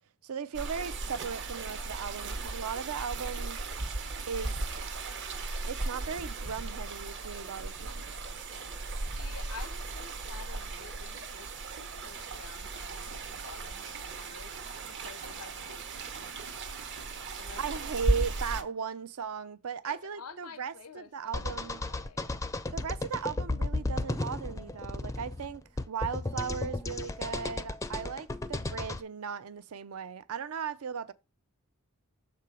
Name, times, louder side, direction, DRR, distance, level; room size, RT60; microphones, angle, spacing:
voice 1, 0.2-3.6 4.3-4.6 5.7-8.0 17.6-21.8 22.7-25.6 25.9-31.1, right 6 dB, 70° right, 0.5 m, -37 dB
sound 1, 0.5-18.6, right 2 dB, 55° right, 0.9 m, -36 dB
voice 2, 9.1-16.3 17.4-18.1 19.8-22.5, left 5 dB, 85° left, 0.7 m, -51 dB
sound 2, 21.3-29.0, left 2 dB, 15° left, 0.4 m, -34 dB
6.8 x 4.4 x 4.9 m
head